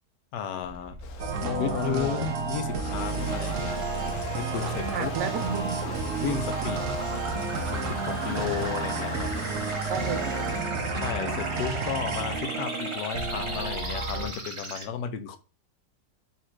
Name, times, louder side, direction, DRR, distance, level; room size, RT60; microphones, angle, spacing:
voice 1, 0.3-1.0 1.6-3.8 4.4-5.1 6.2-6.8 7.7-9.3 10.9-15.4, left 7 dB, 90° left, 1.3 m, -33 dB
sound 1, 0.6-14.8, right 2 dB, 25° right, 0.7 m, -38 dB
Stream, 1.0-10.6, left 7 dB, 70° left, 1.1 m, -39 dB
sound 2, 1.2-14.3, right 4 dB, 60° right, 0.9 m, -31 dB
voice 2, 4.9-5.9 6.6-6.8 9.9-10.7, right 7 dB, 85° right, 1.4 m, -33 dB
4.2 x 2.5 x 4.4 m
omnidirectional pair, 1.8 m